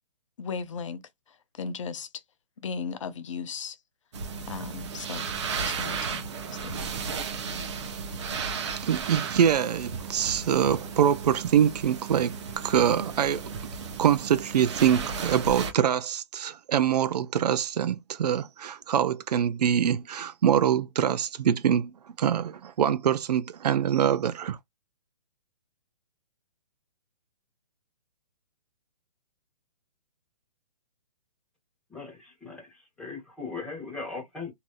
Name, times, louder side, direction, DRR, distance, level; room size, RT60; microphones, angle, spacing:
voice 1, 0.4-1.0 1.6-2.1 2.6-3.8 4.5-6.3 6.6-6.9, left 5 dB, 50° left, 0.7 m, -36 dB
sound 1, 4.1-15.7, right 5 dB, 45° right, 0.8 m, -34 dB
voice 2, 8.4-13.5 14.0-21.9 22.2-24.6, right 9 dB, 70° right, 0.5 m, -24 dB
voice 3, 31.9-32.7 33.0-34.5, left 4 dB, 5° left, 1.3 m, -38 dB
3.0 x 2.7 x 2.3 m
hypercardioid pair, 165°, 21 cm